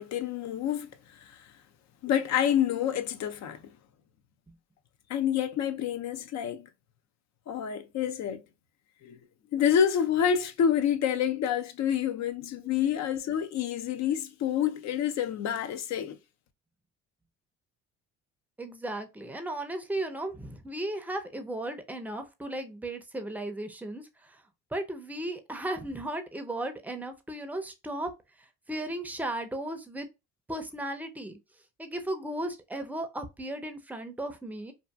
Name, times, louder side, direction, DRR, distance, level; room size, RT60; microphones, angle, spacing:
voice 1, 0.0-1.5 2.0-3.7 5.1-6.7 7.5-8.4 9.0-9.2 9.5-16.2, left 9 dB, 55° left, 0.6 m, -28 dB
voice 2, 18.6-24.4 24.7-28.1 28.7-30.1 30.5-31.3 31.8-34.7, right 1 dB, 5° right, 0.5 m, -35 dB
2.6 x 2.4 x 2.3 m
supercardioid pair, 75°, 32 cm